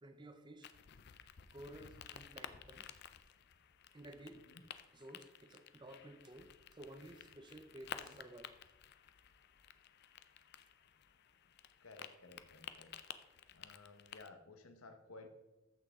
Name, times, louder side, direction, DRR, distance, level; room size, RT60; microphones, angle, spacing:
voice 1, 0.0-0.7 1.5-2.9 3.9-4.5 4.9-8.6, right 1 dB, 20° right, 9 dB, 0.6 m, -54 dB
sound 1, 0.6-14.3, left 8 dB, 50° left, 0.5 m, -54 dB
voice 2, 11.8-15.3, left 3 dB, 75° left, 7 dB, 1.0 m, -57 dB
14.0 x 6.1 x 3.6 m, 1.0 s
head